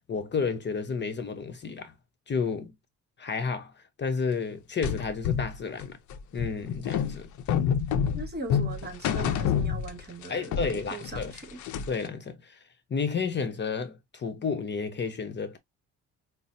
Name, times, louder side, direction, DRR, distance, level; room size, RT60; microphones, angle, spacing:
voice 1, 0.1-1.9 2.3-2.7 3.2-3.7 4.0-5.9 6.3-7.3 10.3-11.3 11.9-12.6 12.9-15.6, left 5 dB, 35° left, 0.7 m, -31 dB
sound 1, 4.8-10.3 10.5-12.1, left 8 dB, 75° left, 0.6 m, -28 dB
voice 2, 8.1-11.6, right 3 dB, 35° right, 1.3 m, -40 dB
5.4 x 2.0 x 2.6 m
cardioid pair, 90°, 30 cm